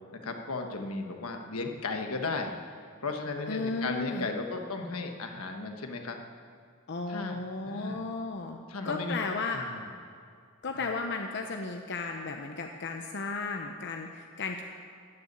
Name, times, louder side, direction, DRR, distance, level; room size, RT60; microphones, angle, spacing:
voice 1, 0.2-2.6 3.0-6.2 7.1-7.4 7.6-8.0 8.7-9.2 9.5-9.8 10.7-10.8, left 3 dB, 80° left, 4 dB, 1.3 m, -35 dB
voice 2, 3.5-4.3 6.9-9.6 10.6-14.6, left 3 dB, 55° left, 4 dB, 0.8 m, -34 dB
14.0 x 7.0 x 9.9 m, 2.3 s
head